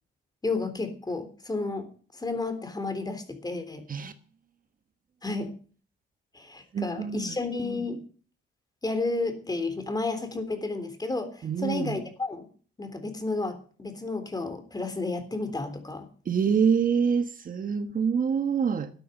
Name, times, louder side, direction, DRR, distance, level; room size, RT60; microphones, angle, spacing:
voice 1, 0.4-3.8 5.2-5.5 6.3-8.0 8.8-12.5 12.8-16.1, left 3 dB, 20° left, 3.5 m, -32 dB
voice 2, 6.7-7.4 11.4-12.0 16.2-18.9, right 6 dB, 45° right, 1.2 m, -26 dB
13.5 x 9.4 x 6.9 m
cardioid pair, 90°, 20 cm